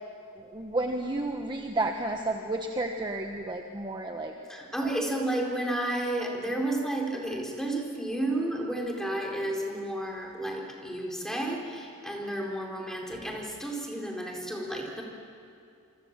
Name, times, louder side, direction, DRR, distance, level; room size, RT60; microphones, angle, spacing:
voice 1, 0.4-4.3 4.8-4.9, right 2 dB, 20° right, 3 dB, 1.2 m, -31 dB
voice 2, 4.5-15.0, right 1 dB, ahead, -1 dB, 4.1 m, -32 dB
28.0 x 24.5 x 7.5 m, 2.6 s
head